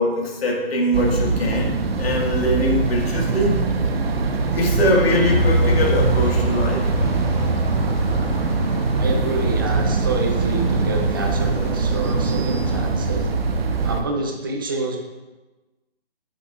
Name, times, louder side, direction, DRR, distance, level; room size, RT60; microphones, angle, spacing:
voice 1, 0.0-3.6 4.5-6.9, left 1 dB, 75° left, -2 dB, 1.7 m, -22 dB
sound 1, 0.9-14.0, right 4 dB, 70° right, 0.9 m, -22 dB
sound 2, 5.2-12.8, equal, 40° left, 2.4 m, -27 dB
voice 2, 9.0-13.3 13.8-15.0, right 3 dB, 20° right, 2 dB, 0.6 m, -28 dB
8.0 x 6.9 x 2.4 m, 1.2 s
hypercardioid pair, 165°, 31 cm